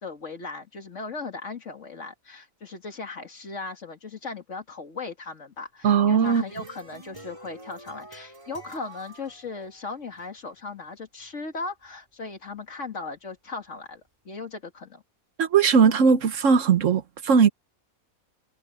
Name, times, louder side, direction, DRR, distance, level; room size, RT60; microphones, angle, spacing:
voice 1, 0.0-15.0, left 4 dB, 60° left, 2.5 m, -37 dB
voice 2, 5.8-6.4 15.4-17.5, right 6 dB, 65° right, 1.3 m, -19 dB
sound 1, 5.9-10.3, right 1 dB, 20° right, 3.7 m, -47 dB
omnidirectional pair, 1.5 m